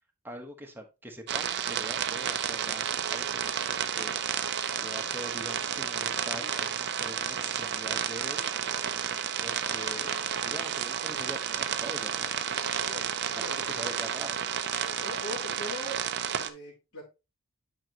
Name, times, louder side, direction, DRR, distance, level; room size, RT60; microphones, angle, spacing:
voice 1, 0.2-4.1 4.8-8.5 9.4-12.6 12.9-13.1 13.5-14.5, equal, 10° right, 1.1 m, -44 dB
sound 1, 1.3-16.5, right 8 dB, 50° right, 0.6 m, -31 dB
voice 2, 12.9-13.6 14.8-16.0 16.3-17.0, equal, 75° left, 3.4 m, -41 dB
8.7 x 5.2 x 2.9 m
head